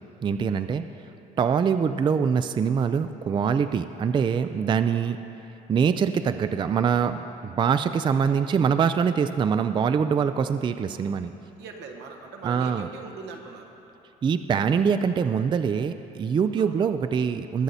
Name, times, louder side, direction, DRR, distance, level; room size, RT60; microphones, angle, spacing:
voice 1, 0.2-0.8 1.4-5.2 5.7-11.3 12.4-12.9 14.2-17.6, right 6 dB, 30° right, 10 dB, 0.4 m, -24 dB
voice 2, 11.6-13.7 16.6-16.7, right 5 dB, 85° right, 2 dB, 1.5 m, -41 dB
20.5 x 8.1 x 4.2 m, 2.8 s
cardioid pair, 110°, 17 cm